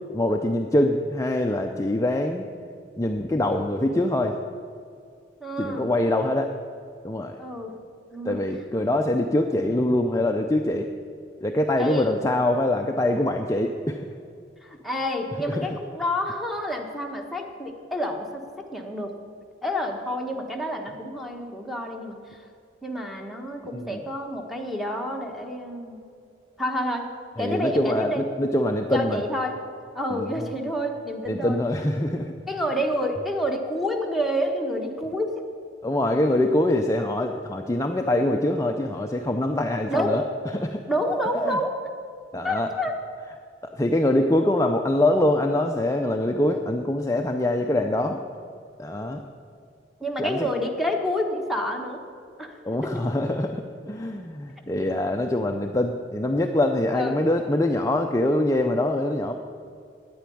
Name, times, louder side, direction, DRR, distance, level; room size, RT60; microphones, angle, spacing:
voice 1, 0.1-2.5 3.0-4.4 5.6-6.5 7.0-7.4 8.2-10.9 11.4-14.1 15.5-15.7 23.7-24.0 27.4-29.2 30.1-30.4 31.3-32.3 35.8-40.2 40.5-40.8 41.5-41.6 42.3-42.7 43.7-48.2 48.8-49.2 50.2-50.5 52.6-59.4, left 1 dB, 15° left, 3 dB, 0.5 m, -24 dB
voice 2, 5.4-5.9 7.4-7.7 8.1-8.4 8.7-8.9 11.8-12.1 14.6-19.1 19.6-22.4 22.8-26.0 26.6-27.1 27.4-28.2 28.9-29.6 29.9-31.6 32.5-35.4 39.9-40.2 40.9-41.8 42.4-43.0 50.0-52.0 52.4-52.5 56.9-57.2, equal, ahead, 2 dB, 1.3 m, -28 dB
9.4 x 9.4 x 10.0 m, 2.4 s
head